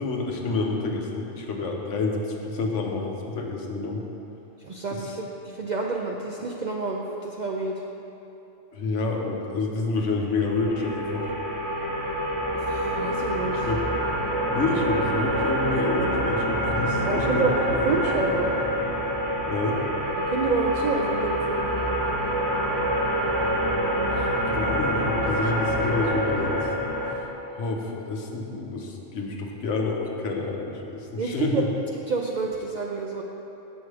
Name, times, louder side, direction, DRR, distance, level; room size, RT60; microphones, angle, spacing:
voice 1, 0.0-4.0 8.7-11.3 13.4-13.9 14.4-17.5 17.7-17.8 19.5-19.8 24.0-26.7 27.5-31.7, left 3 dB, 75° left, 1 dB, 1.2 m, -28 dB
voice 2, 4.6-7.8 12.5-13.7 17.1-18.5 20.3-22.0 31.2-31.6 32.1-33.2, right 4 dB, 60° right, 0 dB, 0.4 m, -28 dB
sound 1, 10.3-27.1, equal, 20° left, 0.8 m, -26 dB
8.2 x 6.3 x 4.8 m, 3.0 s
omnidirectional pair, 1.3 m